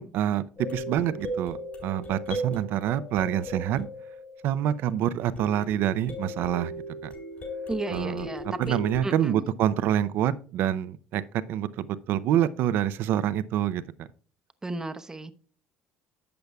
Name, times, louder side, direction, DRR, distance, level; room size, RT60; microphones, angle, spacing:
voice 1, 0.0-1.6 1.8-3.9 4.4-6.7 7.0-7.1 7.9-11.2 11.5-14.1, right 11 dB, 65° right, 0.6 m, -27 dB
sound 1, 0.6-4.8 5.4-9.0, equal, 45° left, 4.5 m, -37 dB
voice 2, 7.7-8.8 9.0-9.4 14.6-15.3, right 2 dB, 15° right, 0.8 m, -34 dB
12.0 x 7.9 x 2.3 m
supercardioid pair, 85°, 4 cm